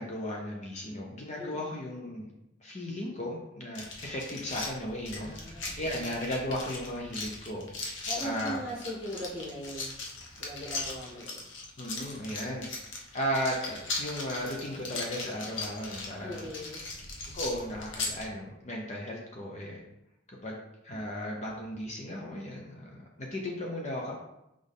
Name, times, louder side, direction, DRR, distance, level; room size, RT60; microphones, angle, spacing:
voice 1, 0.0-2.3 2.6-5.3 5.7-7.7 8.2-8.6 11.8-12.7 13.1-16.5 17.3-19.8 20.4-20.6 20.8-24.2, equal, 35° left, -1 dB, 0.8 m, -35 dB
voice 2, 1.4-1.8 5.1-6.0 8.1-9.9 10.4-11.4 16.2-16.8, equal, 90° left, -9 dB, 2.4 m, -39 dB
sound 1, 3.7-18.3, left 3 dB, 75° left, 1.2 m, -39 dB
6.1 x 5.1 x 3.6 m, 0.87 s
head